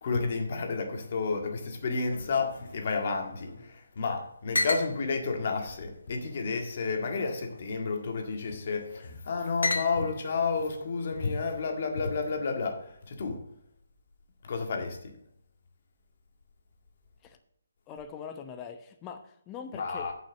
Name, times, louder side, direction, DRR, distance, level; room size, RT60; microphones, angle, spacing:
voice 1, 0.0-13.4 14.4-15.1 19.7-20.1, left 4 dB, 50° left, 1.8 m, -31 dB
sound 1, 2.0-3.7 4.0-4.1 4.5-4.9 5.7-6.5 7.3-7.8 8.7-9.1 9.6-10.3, left 2 dB, 80° left, 1.4 m, -34 dB
voice 2, 17.9-20.1, left 7 dB, 20° left, 0.9 m, -42 dB
7.3 x 5.9 x 7.4 m
figure-of-eight pair, 150°, 0 cm